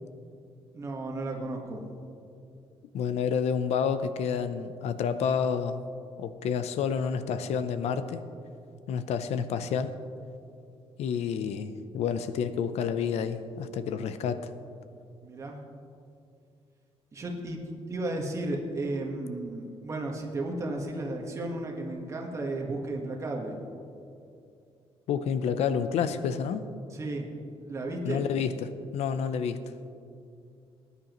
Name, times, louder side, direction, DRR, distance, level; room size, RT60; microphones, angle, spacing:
voice 1, 0.7-1.8 15.2-15.6 17.1-23.6 26.9-27.3 27.6-28.2, right 2 dB, 25° right, 1 dB, 1.4 m, -34 dB
voice 2, 2.9-5.8 6.2-8.2 8.9-9.9 11.0-14.4 25.1-26.6 28.0-29.6, left 7 dB, 80° left, 11 dB, 0.6 m, -29 dB
19.5 x 9.8 x 3.0 m, 2.5 s
cardioid pair, 175°, 11 cm